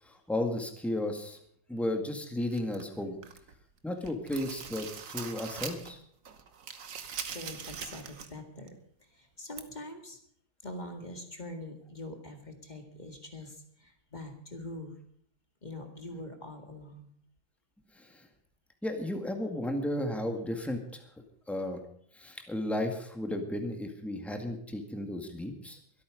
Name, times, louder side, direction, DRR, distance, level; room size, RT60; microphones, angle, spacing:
voice 1, 0.1-1.4 1.7-3.2 3.8-6.0 18.0-18.1 18.8-21.0 21.5-21.8 22.2-25.8, left 1 dB, ahead, 4 dB, 1.8 m, -34 dB
sound 1, 2.5-3.5 3.9-6.0 6.3-8.4 8.7-8.8 9.6-9.7, right 6 dB, 50° right, 1.3 m, -42 dB
voice 2, 7.3-8.7 9.0-10.2 10.6-14.9 15.6-17.1, left 1 dB, 25° left, 4 dB, 2.0 m, -44 dB
23.0 x 8.7 x 5.2 m, 0.63 s
omnidirectional pair, 2.1 m